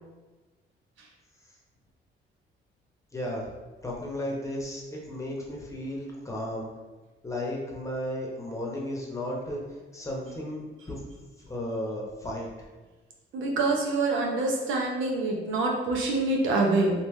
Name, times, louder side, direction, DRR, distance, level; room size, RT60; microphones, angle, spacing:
voice 1, 3.1-3.5 3.8-6.7 7.2-9.6 9.9-10.6 10.9-11.0 11.4-12.5, left 1 dB, 15° left, -2 dB, 0.9 m, -34 dB
voice 2, 13.3-16.9, right 2 dB, 75° right, 0 dB, 0.7 m, -26 dB
3.3 x 2.8 x 3.2 m, 1.3 s
cardioid pair, 90°, 20 cm